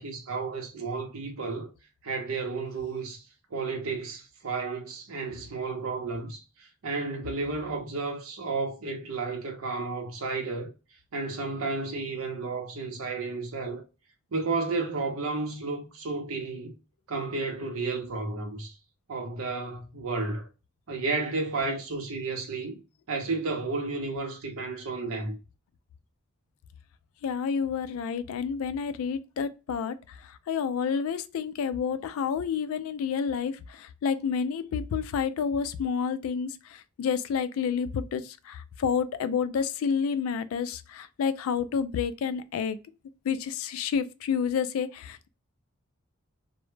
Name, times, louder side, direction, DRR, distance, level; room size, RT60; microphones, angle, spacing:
voice 1, 0.0-1.7 2.0-3.3 3.5-10.7 11.1-13.8 14.3-16.7 17.1-18.7 19.1-20.5 20.9-22.8 23.1-25.3, right 3 dB, 80° right, 0.6 m, -32 dB
voice 2, 27.2-29.9 30.5-33.5 33.8-36.5 37.0-38.2 38.5-42.8 43.3-45.3, left 6 dB, 80° left, 0.3 m, -29 dB
2.1 x 2.0 x 3.1 m
head